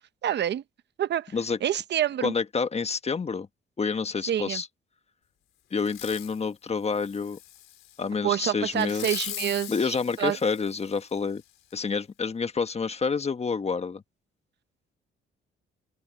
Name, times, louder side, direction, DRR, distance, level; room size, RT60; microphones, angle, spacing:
voice 1, 0.2-0.6 1.0-1.3 1.6-2.3 4.3-4.6 8.2-10.4, right 11 dB, 60° right, 0.8 m, -27 dB
voice 2, 2.2-3.5 3.8-4.7 5.7-7.4 8.0-9.3 9.7-11.4 11.7-14.0, left 5 dB, 30° left, 1.4 m, -28 dB
Fireworks, 5.8-6.4 6.9-8.0 8.8-11.1 11.7-11.8, left 13 dB, 85° left, 3.9 m, -41 dB
open air
cardioid pair, 90°, 20 cm